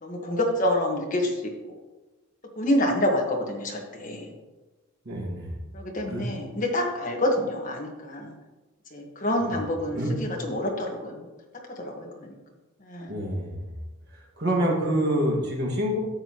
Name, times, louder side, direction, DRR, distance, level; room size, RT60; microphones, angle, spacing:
voice 1, 0.0-1.4 2.6-4.3 5.7-8.3 8.9-11.2 11.8-12.3 12.8-13.2, left 1 dB, 35° left, 0 dB, 1.6 m, -27 dB
voice 2, 5.0-5.6 6.1-6.2 9.4-9.5 9.9-10.1 13.1-13.7 14.1-16.0, equal, 50° right, -2 dB, 2.0 m, -27 dB
12.0 x 7.8 x 3.1 m, 1.1 s
head